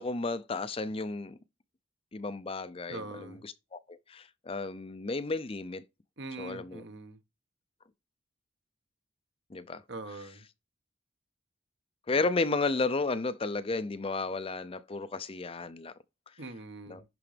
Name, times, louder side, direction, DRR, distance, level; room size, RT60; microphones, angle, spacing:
voice 1, 0.0-1.4 2.1-5.8 6.4-6.8 9.5-9.8 12.1-15.9 16.9-17.0, left 3 dB, 30° left, 0.5 m, -33 dB
voice 2, 2.9-3.4 6.2-7.2 9.9-10.4 16.4-17.0, right 2 dB, 60° right, 1.3 m, -42 dB
11.0 x 3.8 x 3.4 m
head